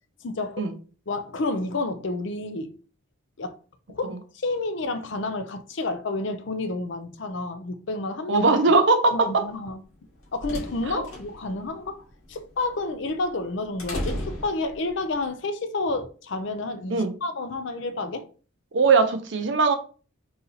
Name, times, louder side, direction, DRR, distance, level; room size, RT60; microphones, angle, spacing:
voice 1, 0.2-0.6 1.1-2.7 3.4-3.5 3.9-8.4 9.1-9.8 10.3-18.3, left 2 dB, 60° left, 0.5 m, -30 dB
voice 2, 8.3-9.4 10.9-11.0 16.9-17.1 18.7-19.7, right 4 dB, 55° right, 0.6 m, -20 dB
sound 1, 9.9-15.2, equal, 80° left, 1.8 m, -36 dB
4.0 x 2.8 x 3.9 m
head